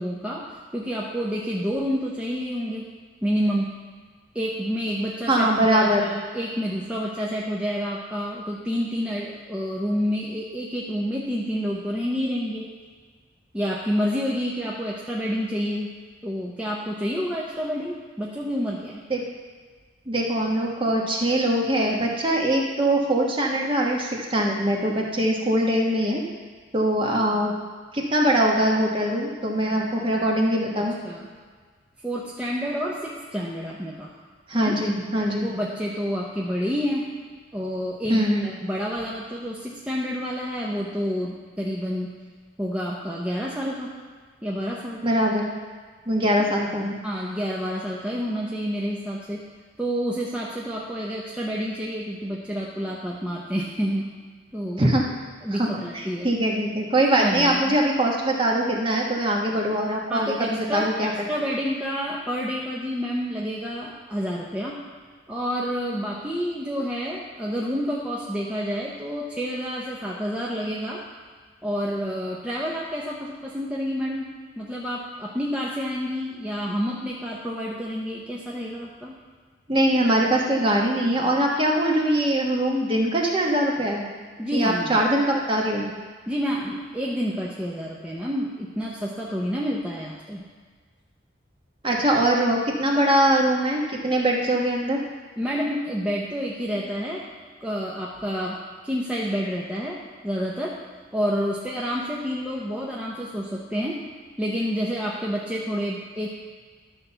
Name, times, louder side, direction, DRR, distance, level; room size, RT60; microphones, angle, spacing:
voice 1, 0.0-2.9 3.2-3.8 4.3-12.7 13.5-15.9 16.2-19.0 31.0-31.3 32.0-34.2 34.6-34.8 35.4-37.1 37.5-42.2 42.6-43.9 44.4-45.4 47.0-49.4 49.8-54.1 54.5-54.8 55.4-56.3 57.2-57.8 60.1-64.8 65.3-71.0 71.6-79.2 84.4-85.0 86.3-90.5 95.4-97.2 97.6-100.8 101.1-104.0 104.4-106.3, equal, 5° right, -5 dB, 0.8 m, -29 dB
voice 2, 5.3-6.1 19.1-19.2 20.1-26.2 26.7-27.5 27.9-30.9 34.5-35.5 38.1-38.5 45.0-45.5 46.1-47.0 54.8-55.1 55.5-61.3 79.7-84.1 84.5-85.9 91.8-95.0, right 1 dB, 25° right, -1 dB, 1.3 m, -22 dB
12.0 x 4.3 x 6.9 m, 1.6 s
head